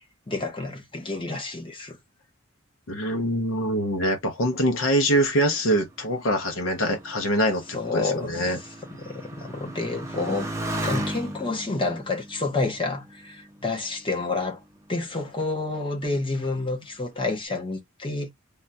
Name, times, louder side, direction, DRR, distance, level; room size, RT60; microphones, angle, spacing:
voice 1, 0.3-2.0 7.7-8.5 8.9-10.5 10.8-14.6 14.9-18.3, left 3 dB, 25° left, 0.8 m, -29 dB
voice 2, 2.9-8.6, equal, 70° left, 0.7 m, -24 dB
Motorcycle, 5.1-13.9 14.6-15.2, right 1 dB, 15° right, 0.5 m, -36 dB
3.5 x 2.2 x 2.6 m
head